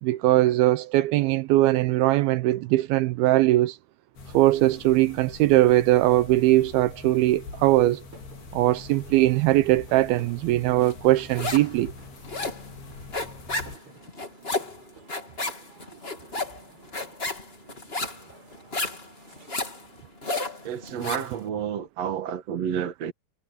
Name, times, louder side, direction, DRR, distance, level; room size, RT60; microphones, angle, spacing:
voice 1, 0.0-3.8 4.3-8.0 8.5-11.9, right 16 dB, 80° right, 2.4 m, -20 dB
sound 1, 4.2-13.8, left 4 dB, 70° left, 6.0 m, -44 dB
sound 2, 7.0-20.0, right 2 dB, 30° right, 7.4 m, -55 dB
sound 3, 10.9-11.8 12.0-21.3, left 2 dB, 15° left, 2.5 m, -32 dB
voice 2, 20.6-23.1, right 8 dB, 55° right, 2.0 m, -30 dB
omnidirectional pair, 4.7 m